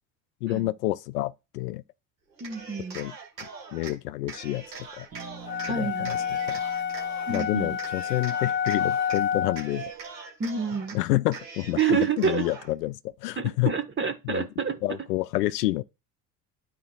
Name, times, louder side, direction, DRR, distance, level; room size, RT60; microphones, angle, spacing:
voice 1, 0.4-1.8 2.9-3.1 3.7-5.1 5.7-6.2 6.5-6.6 7.3-9.9 10.9-13.7 14.2-14.5 14.8-15.8, left 17 dB, 70° left, 0.5 m, -28 dB
Cheering, 2.3-3.9 4.3-5.7 6.0-7.5 7.8-9.2 9.5-11.0 11.3-12.7, right 5 dB, 85° right, 1.7 m, -42 dB
voice 2, 2.4-3.0 5.6-6.2 7.3-7.8 10.4-11.0 11.8-12.5 13.4-14.8, right 6 dB, 25° right, 1.2 m, -28 dB
Bass guitar, 5.1-9.1, right 5 dB, 60° right, 2.1 m, -49 dB
sound 1, 5.4-9.7, left 8 dB, 25° left, 1.0 m, -29 dB
12.5 x 4.4 x 2.4 m
figure-of-eight pair, 60°, 49 cm